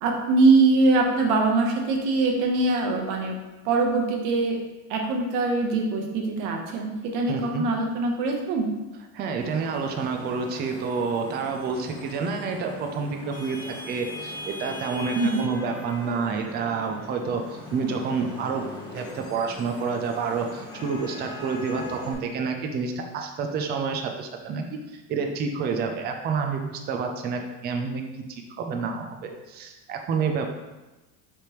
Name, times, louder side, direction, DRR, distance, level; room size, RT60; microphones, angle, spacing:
voice 1, 0.0-3.4 3.6-4.6 4.9-8.7 15.1-15.5, right 3 dB, 75° right, 2 dB, 1.0 m, -22 dB
voice 2, 7.3-7.6 9.1-17.4 17.7-18.7 18.9-24.7 25.1-28.0 28.3-30.4, right 5 dB, 25° right, 4 dB, 0.4 m, -29 dB
Vehicle horn car horn honking / Traffic noise roadway noise, 9.4-22.1, left 1 dB, 10° left, 1.2 m, -40 dB
4.5 x 3.4 x 3.0 m, 1.1 s
cardioid pair, 135°, 40 cm